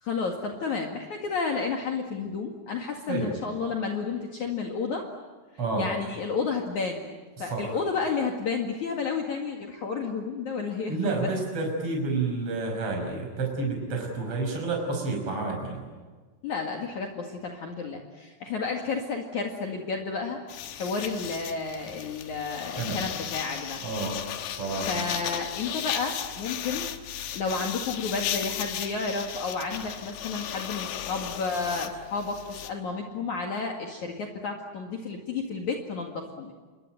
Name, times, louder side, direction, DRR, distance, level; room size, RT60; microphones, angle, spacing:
voice 1, 0.0-5.0 5.8-7.1 7.4-11.3 16.4-20.4 20.7-23.8 24.9-36.5, left 4 dB, 55° left, 2 dB, 3.0 m, -31 dB
voice 2, 7.4-7.8 10.9-15.8 22.8-23.0 23.8-24.2 24.6-25.0, right 3 dB, 35° right, 1 dB, 6.4 m, -29 dB
sound 1, 20.5-32.7, left 10 dB, 75° left, 3.3 m, -35 dB
28.5 x 22.5 x 9.2 m, 1.4 s
omnidirectional pair, 4.7 m